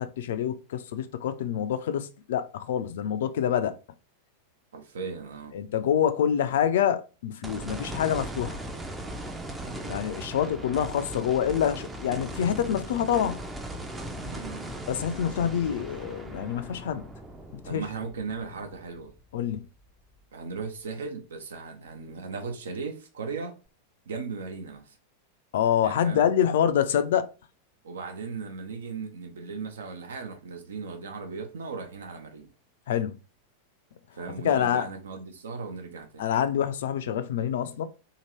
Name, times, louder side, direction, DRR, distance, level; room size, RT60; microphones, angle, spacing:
voice 1, 0.0-3.8 5.5-8.6 9.9-13.4 14.9-17.0 17.6-17.8 19.3-19.7 25.5-27.3 32.9-33.2 34.4-34.9 36.2-37.8, left 9 dB, 55° left, 0.3 m, -26 dB
voice 2, 4.7-5.5 9.6-10.0 14.2-14.7 17.7-19.1 20.3-23.5 24.1-25.0 25.8-26.3 27.8-32.5 34.2-36.3, right 4 dB, 65° right, 0.6 m, -37 dB
sound 1, 7.4-19.8 20.2-20.3 23.7-23.8, right 1 dB, 10° right, 0.5 m, -38 dB
2.8 x 2.5 x 2.9 m
figure-of-eight pair, 90°, 0 cm